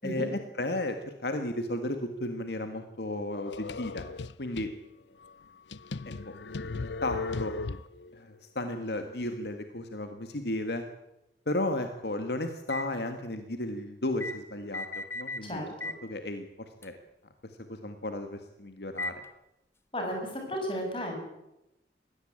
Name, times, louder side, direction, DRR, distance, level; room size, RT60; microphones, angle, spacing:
voice 1, 0.0-4.1 4.4-4.7 6.1-6.3 6.7-7.5 8.1-10.8 11.5-15.6 16.0-17.0 17.4-19.2, left 1 dB, 70° left, 7 dB, 1.7 m, -34 dB
sound 1, 3.3-4.7 5.2-5.3 5.7-8.1, left 3 dB, 85° left, 0.7 m, -37 dB
sound 2, 12.7-12.9 14.2-14.4 14.7-15.5 15.8-16.0 16.8-16.9 19.0-19.3, left 2 dB, 15° left, 1.4 m, -36 dB
voice 2, 15.4-15.9 19.9-21.2, equal, 30° left, 2 dB, 7.1 m, -34 dB
21.5 x 17.5 x 8.8 m, 0.91 s
head